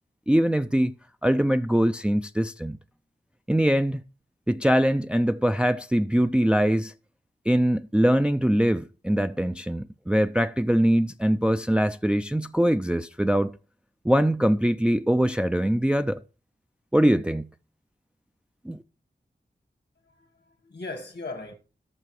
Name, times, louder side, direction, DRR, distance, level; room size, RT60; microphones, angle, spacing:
voice 1, 0.3-0.9 1.2-2.8 3.5-4.0 4.5-6.9 7.5-13.5 14.0-16.2 16.9-17.5 18.7-18.8, equal, 5° right, 0.4 m, -22 dB
voice 2, 20.0-21.5, left 2 dB, 80° left, 1.5 m, -38 dB
17.5 x 6.6 x 3.1 m
wide cardioid pair, 80°, 18 cm